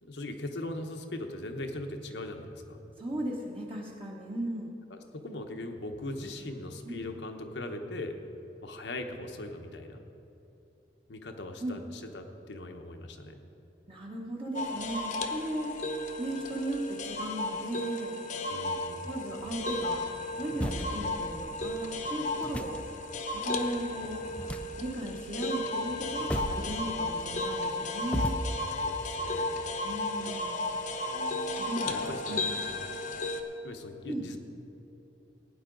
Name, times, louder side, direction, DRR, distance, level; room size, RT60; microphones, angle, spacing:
voice 1, 0.0-2.8 4.9-8.2 8.6-10.0 11.1-13.4 18.5-19.1 28.8-29.6 31.9-32.5 33.6-34.4, left 1 dB, 90° left, 4 dB, 1.0 m, -40 dB
voice 2, 3.0-4.7 6.8-7.0 11.6-11.8 13.9-15.8 16.2-18.2 19.1-20.0 20.4-22.8 23.3-24.2 24.8-28.3 29.8-30.6 31.6-32.5 34.1-34.3, right 1 dB, 30° right, -2 dB, 1.1 m, -36 dB
sound 1, 14.5-33.4, left 2 dB, 45° left, 0.8 m, -34 dB
sound 2, 19.4-28.6, equal, 10° left, 0.4 m, -39 dB
16.5 x 9.4 x 3.9 m, 3.0 s
head